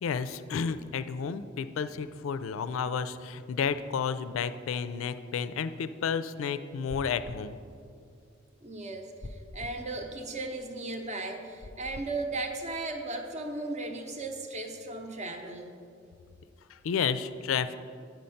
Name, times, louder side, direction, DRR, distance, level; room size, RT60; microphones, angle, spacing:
voice 1, 0.0-7.6 16.7-17.8, left 6 dB, 85° left, 13 dB, 0.4 m, -31 dB
sound 1, 6.9-7.5 9.2-9.8 11.6-12.1, left 1 dB, 20° left, 0.4 m, -43 dB
voice 2, 8.6-15.7, right 2 dB, 35° right, 5 dB, 0.7 m, -36 dB
9.0 x 5.3 x 5.7 m, 2.3 s
head